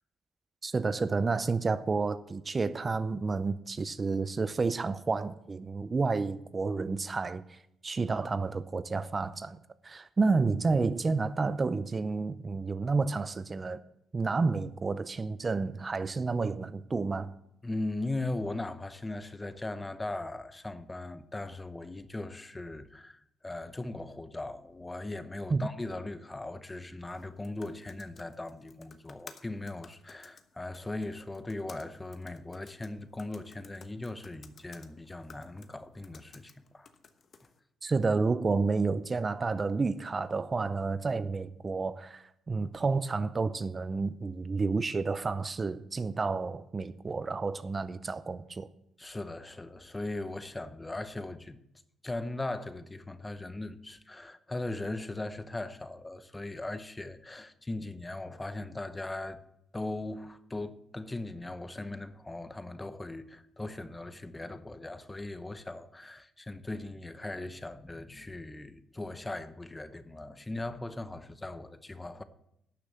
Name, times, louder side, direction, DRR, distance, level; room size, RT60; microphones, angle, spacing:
voice 1, 0.6-9.6 9.8-13.8 14.1-17.3 25.5-25.7 37.8-48.7, right 4 dB, 30° right, 0.5 m, -30 dB
voice 2, 17.6-36.9 49.0-51.6 52.0-59.4 59.7-72.2, left 2 dB, 15° left, 0.8 m, -39 dB
sound 1, 27.0-37.6, left 5 dB, 50° left, 1.1 m, -56 dB
12.0 x 6.4 x 7.6 m
cardioid pair, 90°, 0 cm